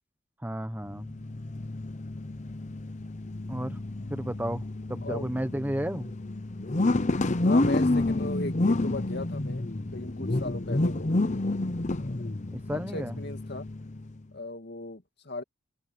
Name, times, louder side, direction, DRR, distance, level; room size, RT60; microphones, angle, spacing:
voice 1, 0.4-1.1 3.5-3.8 4.1-6.1 12.5-13.2, right 1 dB, 10° right, 1.0 m, -33 dB
sound 1, 0.8-14.2, left 2 dB, 40° left, 0.8 m, -29 dB
voice 2, 7.4-11.1 12.0-12.3 12.7-13.6 14.3-15.4, left 2 dB, 60° left, 2.4 m, -37 dB
open air
head